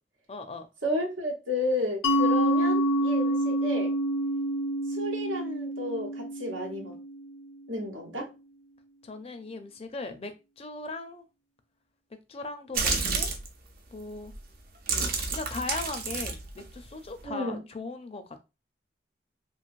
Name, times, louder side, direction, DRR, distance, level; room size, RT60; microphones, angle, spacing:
voice 1, 0.3-0.7 9.0-11.2 12.3-13.3 13.9-14.3 14.9-18.4, left 3 dB, 30° left, 0.4 m, -38 dB
voice 2, 0.8-3.9 4.9-7.0 7.7-8.3 17.2-17.6, left 1 dB, 85° right, 1.0 m, -32 dB
Mallet percussion, 2.0-7.4, equal, 85° left, 0.5 m, -27 dB
sound 1, 12.7-13.5 14.2-14.4 14.7-17.2, right 4 dB, 50° right, 0.6 m, -30 dB
3.1 x 2.8 x 2.5 m
head